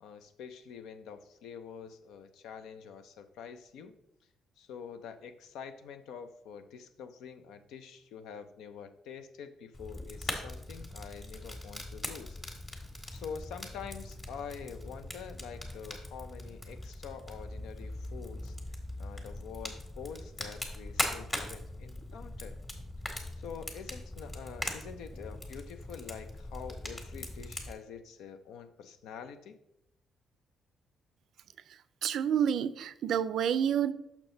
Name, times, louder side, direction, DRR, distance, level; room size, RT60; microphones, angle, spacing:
voice 1, 0.0-4.0 4.6-12.4 13.1-18.6 19.0-22.6 23.4-29.6, left 7 dB, 90° left, 9 dB, 0.6 m, -46 dB
Fire, 9.7-27.7, left 1 dB, 25° left, 1.5 m, -41 dB
voice 2, 32.0-33.9, right 8 dB, 70° right, 15 dB, 0.4 m, -28 dB
6.0 x 5.9 x 3.9 m, 0.81 s
cardioid pair, 90°, 0 cm